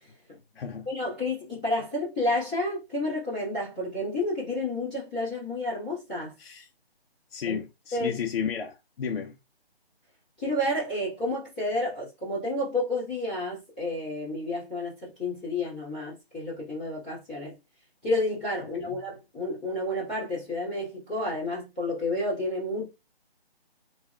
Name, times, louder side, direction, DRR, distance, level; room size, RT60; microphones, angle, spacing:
voice 1, 0.0-0.4 0.8-6.3 7.4-7.6 7.9-8.2 10.4-17.5 18.0-22.9, left 1 dB, 10° left, 0.8 m, -30 dB
voice 2, 0.6-0.9 6.4-6.7 7.3-9.3 18.8-18.9, left 7 dB, 65° left, 0.5 m, -33 dB
3.5 x 2.3 x 2.3 m
hypercardioid pair, 170°, 31 cm